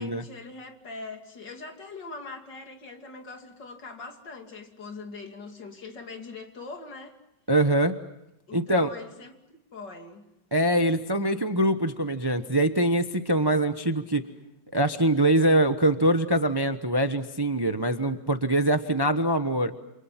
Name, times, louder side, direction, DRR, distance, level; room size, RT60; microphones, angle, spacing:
voice 1, 0.0-7.2 8.5-10.2, left 3 dB, 75° left, 4 dB, 3.3 m, -42 dB
voice 2, 7.5-8.0 8.5-8.9 10.5-14.3 14.7-19.7, right 1 dB, 20° right, 9 dB, 0.8 m, -23 dB
28.5 x 28.0 x 5.8 m, 0.86 s
omnidirectional pair, 1.9 m